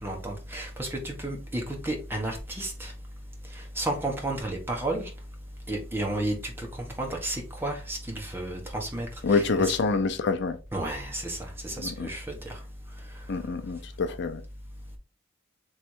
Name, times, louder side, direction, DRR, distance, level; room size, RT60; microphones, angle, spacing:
voice 1, 0.0-2.9 3.8-5.1 5.7-6.7 7.0-9.7 10.7-11.4 11.6-12.5, right 1 dB, 10° right, 1.2 m, -32 dB
voice 2, 9.2-10.6 11.8-12.1 13.3-14.4, left 4 dB, 65° left, 0.5 m, -26 dB
3.4 x 3.2 x 4.4 m
head